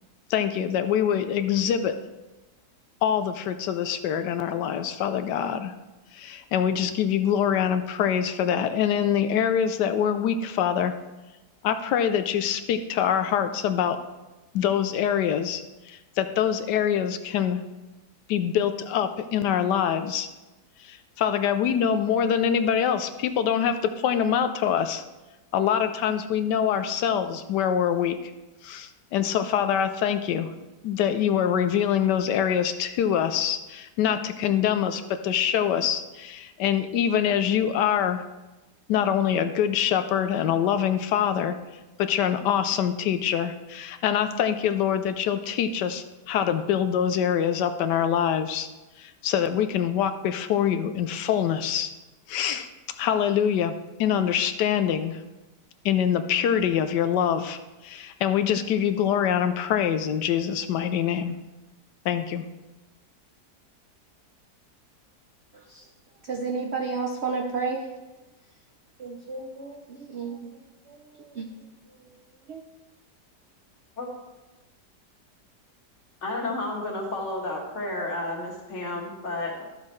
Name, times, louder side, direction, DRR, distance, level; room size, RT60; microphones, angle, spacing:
voice 1, 0.3-2.0 3.0-5.7 6.1-10.9 11.6-14.0 14.5-17.6 18.3-20.3 20.8-25.0 25.5-28.3 28.6-30.5 30.8-38.2 38.9-41.6 42.0-48.7 49.0-51.9 52.3-52.7 53.0-53.7 54.0-55.2 55.8-61.4 62.0-62.4, left 9 dB, 80° left, 1.2 m, -24 dB
voice 2, 65.5-65.9 66.2-67.9 69.0-70.6 70.9-71.5 71.9-72.6, right 4 dB, 55° right, 0.7 m, -33 dB
voice 3, 76.2-79.6, left 2 dB, 45° left, 1.9 m, -31 dB
12.0 x 7.4 x 3.2 m
omnidirectional pair, 1.8 m